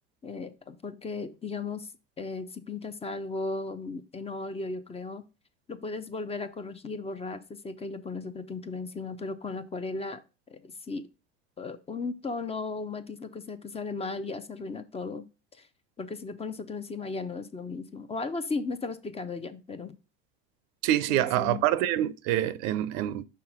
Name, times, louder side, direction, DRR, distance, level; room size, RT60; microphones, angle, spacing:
voice 1, 0.2-1.9 2.2-5.3 5.7-10.2 10.5-11.0 11.6-15.2 15.6-15.7 16.0-19.9 21.1-21.7, left 3 dB, 20° left, 0.7 m, -36 dB
voice 2, 20.8-23.2, right 13 dB, 65° right, 0.6 m, -26 dB
5.7 x 4.2 x 4.8 m
supercardioid pair, 95°, 31 cm